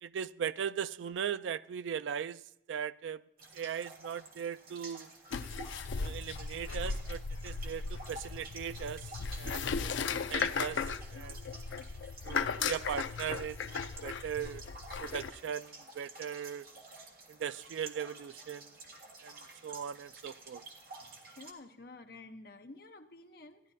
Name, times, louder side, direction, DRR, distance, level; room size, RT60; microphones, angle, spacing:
voice 1, 0.0-2.4 2.7-3.2 3.5-5.1 6.0-11.4 12.2-13.6 14.0-14.6 15.0-16.7 17.3-18.8 19.2-20.6, right 8 dB, 85° right, 0.3 m, -39 dB
sound 1, 3.4-21.5, right 2 dB, 50° right, 1.6 m, -51 dB
sound 2, 5.3-15.3, left 5 dB, 85° left, 0.5 m, -37 dB
voice 2, 21.0-23.6, left 2 dB, 50° left, 0.8 m, -51 dB
15.0 x 10.5 x 2.7 m
head